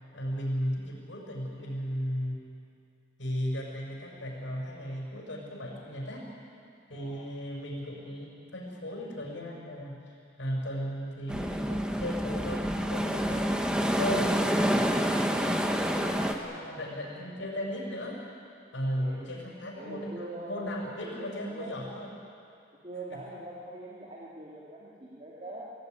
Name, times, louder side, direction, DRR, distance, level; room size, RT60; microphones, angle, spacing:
voice 1, 0.1-2.4 3.2-6.3 6.9-14.5 15.2-18.2 18.7-22.1 23.1-23.2, equal, 85° left, -2 dB, 6.0 m, -36 dB
voice 2, 6.9-7.3 16.4-16.9 18.9-19.4 19.7-21.9 22.8-25.7, right 1 dB, 30° right, -5 dB, 2.6 m, -43 dB
sound 1, 11.3-16.3, equal, 5° right, 1.2 m, -28 dB
25.5 x 16.5 x 9.4 m, 2.5 s
head